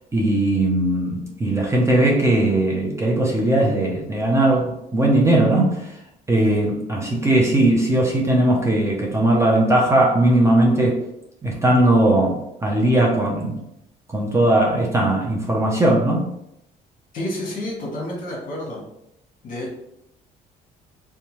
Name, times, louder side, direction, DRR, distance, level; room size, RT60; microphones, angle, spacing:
voice 1, 0.1-6.0 6.3-11.0 11.4-13.6 14.1-16.3, right 1 dB, 15° right, -2 dB, 0.5 m, -19 dB
voice 2, 17.1-18.8 19.4-19.7, left 1 dB, 50° left, -2 dB, 1.2 m, -29 dB
2.6 x 2.2 x 3.0 m, 0.80 s
cardioid pair, 110°, 17 cm